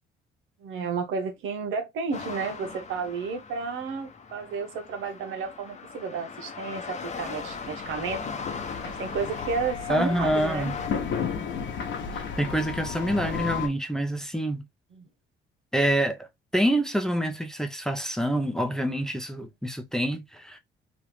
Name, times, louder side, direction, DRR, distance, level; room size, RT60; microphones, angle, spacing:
voice 1, 0.6-8.2 8.8-10.7 14.9-15.0, right 5 dB, 85° right, 0.9 m, -32 dB
sound 1, 2.1-10.9, left 5 dB, 35° left, 0.8 m, -39 dB
sound 2, 7.0-13.7, left 6 dB, 70° left, 0.9 m, -34 dB
voice 2, 9.9-10.8 12.1-14.6 15.7-16.3 16.5-20.6, right 1 dB, 5° left, 0.7 m, -26 dB
3.0 x 2.5 x 3.4 m
cardioid pair, 90°, 20 cm